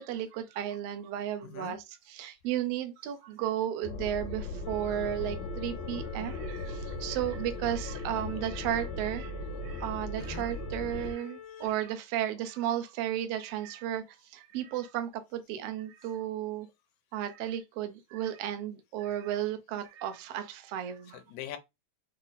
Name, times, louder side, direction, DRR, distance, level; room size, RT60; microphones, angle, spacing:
voice 1, 0.0-9.3 9.6-16.7 17.1-21.2, right 11 dB, 70° right, 1.6 m, -34 dB
voice 2, 1.4-1.8 6.6-6.7 10.2-10.5 11.5-11.8 21.1-21.6, left 11 dB, 85° left, 2.0 m, -43 dB
sound 1, 3.8-11.1, left 2 dB, 70° left, 2.0 m, -38 dB
sound 2, 4.6-11.7, left 8 dB, 40° left, 0.9 m, -47 dB
5.6 x 2.1 x 4.0 m
omnidirectional pair, 3.3 m